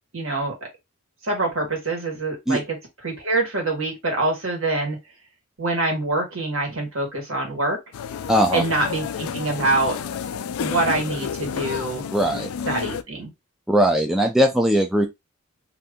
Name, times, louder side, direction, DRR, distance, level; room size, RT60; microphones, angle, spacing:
voice 1, 0.1-0.5 1.2-5.0 5.6-7.8 8.5-10.0 10.6-12.0 12.6-13.3, right 2 dB, 65° right, 1.5 m, -25 dB
sound 1, 7.9-13.0, left 7 dB, 80° left, 0.3 m, -30 dB
voice 2, 8.3-8.6 12.1-12.5 13.7-15.1, equal, ahead, 0.3 m, -19 dB
2.8 x 2.5 x 3.4 m
head